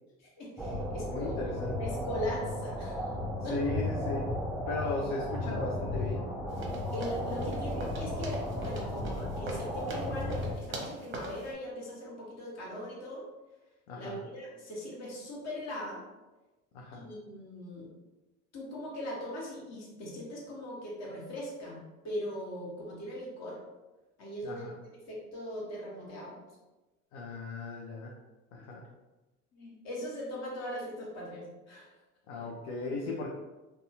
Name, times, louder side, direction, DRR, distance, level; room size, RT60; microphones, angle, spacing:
voice 1, 0.2-1.4 1.8-3.1 3.4-3.6 6.9-13.2 13.9-16.0 16.9-17.9 18.5-21.8 22.0-23.6 24.2-26.4 28.6-28.7 29.5-31.9 32.4-32.5, equal, 40° left, -4 dB, 1.1 m, -40 dB
sound 1, 0.6-10.5, left 1 dB, ahead, 0.3 m, -35 dB
voice 2, 1.1-1.8 3.5-4.3 4.7-6.3 13.9-14.2 16.7-17.1 24.4-24.7 27.1-28.1 28.5-28.8 32.3-33.3, left 3 dB, 70° left, -1 dB, 0.6 m, -36 dB
sound 2, 6.6-11.5, right 2 dB, 30° right, 0.7 m, -42 dB
2.6 x 2.3 x 2.8 m, 1.1 s
hypercardioid pair, 75°, 42 cm